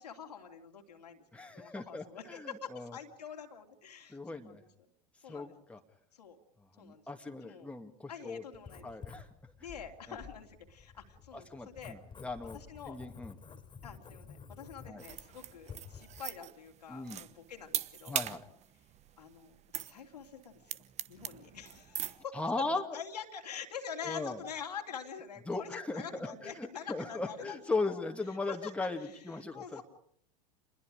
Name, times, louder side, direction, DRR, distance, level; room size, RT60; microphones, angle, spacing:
voice 1, 0.0-4.6 5.2-5.5 6.1-6.4 6.8-7.1 7.4-7.7 8.1-8.9 9.6-12.0 12.5-13.0 13.8-18.2 19.2-20.8 21.1-22.3 22.9-28.0 28.5-28.9 29.5-29.8, left 7 dB, 80° left, 3 dB, 2.9 m, -46 dB
voice 2, 1.3-3.0 4.1-4.6 5.3-5.8 6.8-8.4 8.8-9.5 10.1-10.2 11.3-12.6 12.9-13.3 14.9-15.0 16.9-17.2 18.1-18.4 22.3-23.0 24.0-24.4 25.5-29.8, left 3 dB, 5° left, 3 dB, 2.4 m, -38 dB
Writing, 8.5-16.2, left 6 dB, 25° left, 3.1 m, -51 dB
sound 1, 15.0-22.2, right 11 dB, 35° right, 1.1 m, -41 dB
27.5 x 21.5 x 5.0 m, 0.66 s
hypercardioid pair, 90°, 20 cm